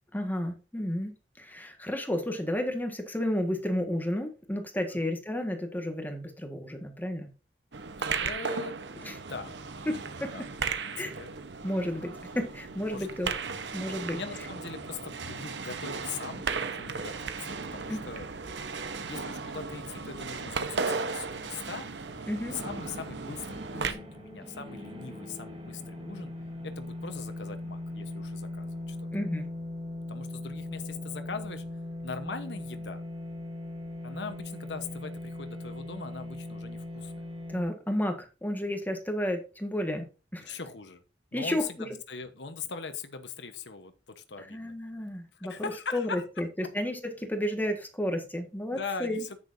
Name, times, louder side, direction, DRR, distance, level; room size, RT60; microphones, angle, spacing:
voice 1, 0.1-7.3 9.0-9.2 9.9-10.5 11.0-11.1 11.6-13.3 13.7-14.2 17.9-18.0 22.3-22.6 29.1-29.5 37.5-40.1 40.3-40.6 41.3-42.0 44.4-49.2, left 1 dB, 10° left, 5 dB, 1.6 m, -32 dB
sound 1, 7.7-23.9, right 4 dB, 75° right, 1.0 m, -36 dB
voice 2, 8.2-8.8 9.3-9.5 10.3-10.5 10.8-11.3 12.9-13.2 14.1-16.4 16.7-18.3 19.0-21.9 22.5-26.3 26.6-29.1 30.1-31.6 32.0-33.0 34.0-37.2 40.4-41.0 41.3-44.7 45.3-46.2 48.7-49.4, left 5 dB, 80° left, 8 dB, 1.1 m, -40 dB
sound 2, 22.0-37.6, left 1 dB, 35° right, 2.3 m, -40 dB
10.5 x 8.9 x 2.7 m, 0.32 s
head